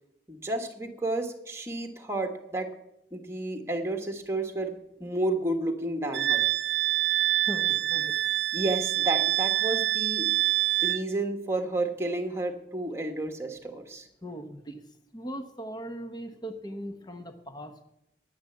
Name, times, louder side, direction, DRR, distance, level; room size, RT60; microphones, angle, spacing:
voice 1, 0.3-2.7 3.1-6.4 8.5-10.3 10.8-14.1, right 2 dB, 15° right, 4 dB, 1.6 m, -31 dB
Wind instrument woodwind instrument, 6.1-11.0, right 15 dB, 60° right, 0.5 m, -26 dB
voice 2, 7.4-8.4 14.2-14.8 15.1-17.9, equal, 20° left, 7 dB, 1.1 m, -39 dB
10.5 x 10.5 x 8.4 m, 0.84 s
head